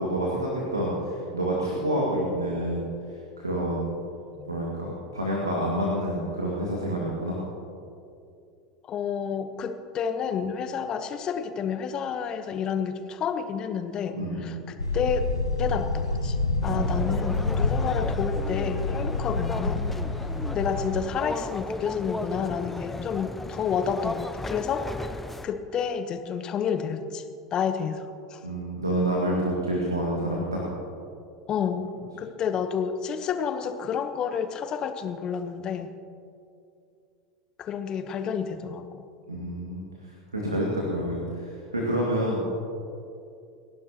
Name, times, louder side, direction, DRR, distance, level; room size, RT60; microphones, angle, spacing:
voice 1, 0.0-2.9 3.4-3.9 4.5-7.4 14.1-14.5 16.7-17.5 28.4-30.6 39.3-39.8 40.3-42.5, right 1 dB, 80° right, -3 dB, 2.1 m, -28 dB
voice 2, 8.8-14.6 14.9-15.3 15.6-16.4 16.6-19.8 20.5-27.2 27.5-28.4 31.5-35.9 37.6-39.0, left 7 dB, 35° left, 9 dB, 1.1 m, -30 dB
sound 1, 14.8-21.0, left 3 dB, 85° left, 0.7 m, -28 dB
sound 2, 16.6-25.5, left 2 dB, 10° left, 0.6 m, -35 dB
29.0 x 11.5 x 3.0 m, 2.5 s
figure-of-eight pair, 80°, 2 cm